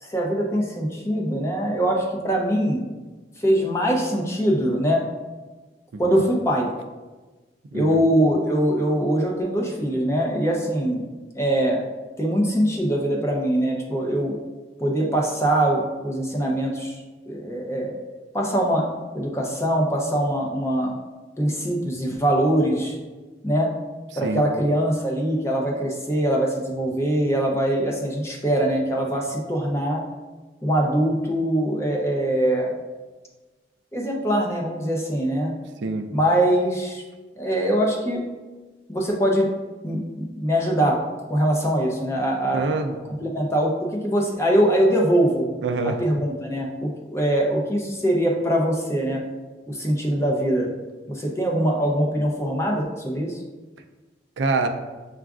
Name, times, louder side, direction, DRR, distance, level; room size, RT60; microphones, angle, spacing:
voice 1, 0.0-2.9 3.4-5.0 6.0-6.7 7.7-11.1 11.3-11.9 12.2-14.4 14.8-17.9 18.3-18.9 19.1-20.9 21.4-23.0 23.4-23.7 24.2-30.0 30.6-32.7 33.9-35.5 36.1-37.0 37.4-38.2 38.9-39.5 39.8-41.0 41.3-42.7 43.2-45.5 45.8-49.2 49.7-50.7 51.1-53.4, right 1 dB, 15° left, -1 dB, 0.5 m, -22 dB
voice 2, 42.5-43.2 45.6-46.0 54.4-54.7, right 3 dB, 80° right, 5 dB, 0.4 m, -25 dB
7.0 x 2.4 x 2.3 m, 1.2 s
head